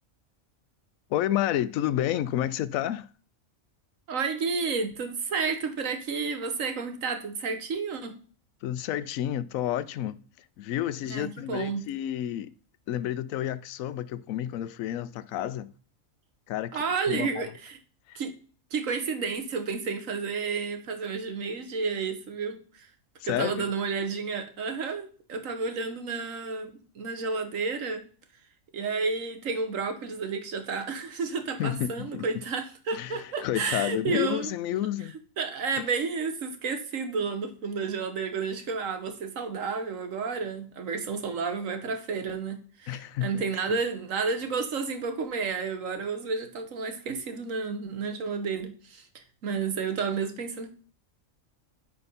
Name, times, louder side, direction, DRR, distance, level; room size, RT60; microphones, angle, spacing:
voice 1, 1.1-3.1 8.6-10.2 10.6-12.5 12.9-15.7 16.5-16.7 17.1-17.4 18.1-18.2 23.2-23.7 31.6-32.2 32.9-35.1 42.9-43.4 43.7-43.8, left 12 dB, 85° left, 1.0 m, -30 dB
voice 2, 4.1-8.1 11.1-11.9 16.7-17.8 18.1-18.3 18.7-22.9 23.2-28.0 28.7-34.5 35.4-49.1 49.4-50.7, right 5 dB, 75° right, 1.6 m, -31 dB
9.8 x 4.4 x 5.5 m
omnidirectional pair, 1.4 m